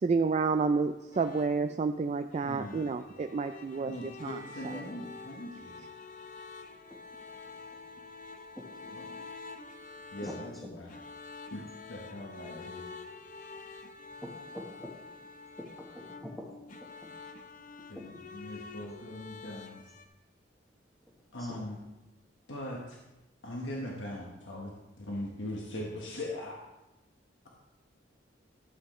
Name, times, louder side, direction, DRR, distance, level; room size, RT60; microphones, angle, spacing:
voice 1, 0.0-4.7, right 4 dB, 35° right, 8 dB, 0.3 m, -30 dB
sound 1, 1.1-20.1, left 4 dB, 45° left, 0.7 m, -48 dB
voice 2, 2.4-2.8 3.9-5.9 8.9-9.2 10.1-11.0 11.5-11.6 11.9-12.9 17.9-19.8 21.3-21.8 22.5-23.0 23.4-26.6, left 1 dB, 85° left, -2 dB, 1.4 m, -40 dB
voice 3, 14.2-14.9 15.6-15.7 15.9-16.3, equal, ahead, -5 dB, 1.2 m, -43 dB
12.5 x 7.9 x 3.2 m, 1.0 s
head